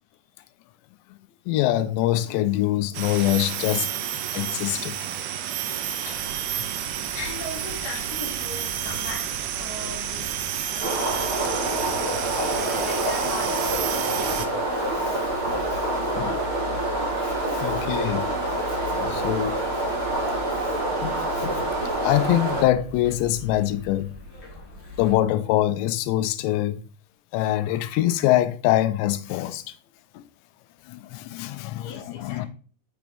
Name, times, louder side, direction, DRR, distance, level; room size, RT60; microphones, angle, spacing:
voice 1, 1.5-3.9 4.3-5.0 6.1-6.2 15.0-15.2 15.5-15.8 16.2-16.4 17.2-18.3 19.1-19.6 20.2-20.4 21.4-21.7 22.0-24.1 25.0-26.8 27.3-29.6 30.2-30.3 30.9-32.5, left 14 dB, 90° left, 2.8 m, -24 dB
sound 1, 2.9-14.5, right 10 dB, 80° right, 2.4 m, -30 dB
voice 2, 5.7-6.1 7.1-9.3 9.6-11.0 12.4-13.7 31.7-32.5, left 3 dB, 70° left, 3.9 m, -39 dB
sound 2, 6.0-25.2, left 2 dB, 40° left, 1.8 m, -40 dB
sound 3, 10.8-22.6, right 2 dB, 25° right, 1.0 m, -26 dB
7.0 x 6.0 x 3.4 m
omnidirectional pair, 4.9 m